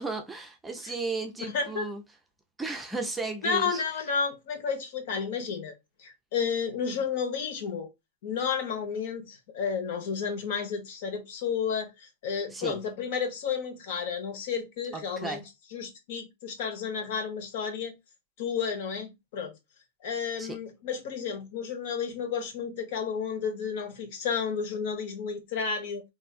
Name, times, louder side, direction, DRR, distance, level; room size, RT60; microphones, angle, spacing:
voice 1, 0.0-2.0 2.6-3.8 12.5-12.8 14.9-15.4 20.4-20.6, right 3 dB, 10° right, 0.6 m, -34 dB
voice 2, 1.5-1.9 3.4-5.7 6.0-7.9 8.2-15.4 15.7-17.9 18.4-19.6 20.0-26.0, left 6 dB, 60° left, 1.1 m, -32 dB
3.4 x 2.6 x 2.4 m
hypercardioid pair, 120°, 0 cm